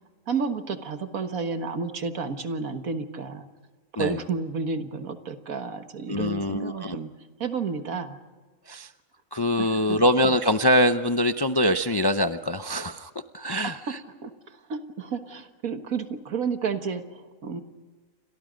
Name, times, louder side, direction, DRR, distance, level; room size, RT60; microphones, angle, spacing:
voice 1, 0.3-3.5 3.9-7.1 7.4-8.2 9.6-10.0 13.6-13.8 14.2-17.6, right 5 dB, 80° right, 7 dB, 1.9 m, -31 dB
voice 2, 6.1-7.0 8.7-8.9 9.3-14.0, equal, 25° left, 8 dB, 0.5 m, -24 dB
30.0 x 26.0 x 5.2 m, 1.4 s
omnidirectional pair, 1.5 m